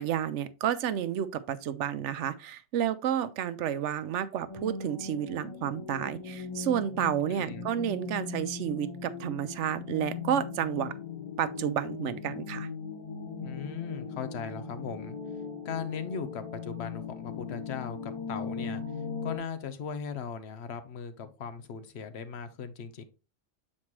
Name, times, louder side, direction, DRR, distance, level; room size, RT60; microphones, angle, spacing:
voice 1, 0.0-10.9 11.4-12.7, right 10 dB, 90° right, 0.9 m, -31 dB
sound 1, 4.5-19.4, left 5 dB, 30° left, 0.8 m, -39 dB
voice 2, 7.3-7.7 13.4-15.2 15.6-18.8 19.2-23.0, left 6 dB, 70° left, 1.0 m, -38 dB
7.2 x 4.3 x 3.1 m
omnidirectional pair, 1.2 m